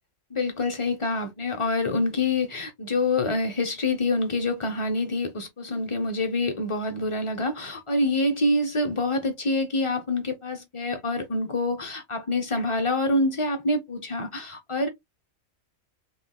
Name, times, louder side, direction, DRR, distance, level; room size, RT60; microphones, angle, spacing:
voice 1, 0.3-14.9, left 2 dB, 45° left, 0.4 m, -26 dB
3.5 x 2.7 x 2.2 m
omnidirectional pair, 1.4 m